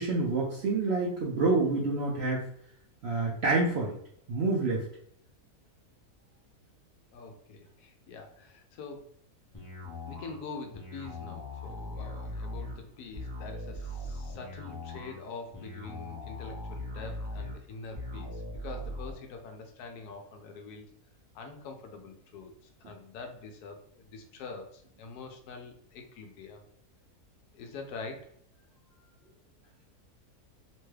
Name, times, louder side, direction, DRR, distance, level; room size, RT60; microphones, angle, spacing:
voice 1, 0.0-2.5 3.0-4.0 4.3-4.9, right 3 dB, 70° right, -3 dB, 0.6 m, -27 dB
voice 2, 7.1-9.0 10.1-20.9 21.3-26.6 27.5-28.3 29.0-29.1, left 4 dB, 90° left, 4 dB, 1.1 m, -45 dB
sound 1, 9.5-19.1, left 1 dB, 20° left, 0.6 m, -40 dB
3.0 x 2.2 x 3.2 m, 0.67 s
omnidirectional pair, 1.6 m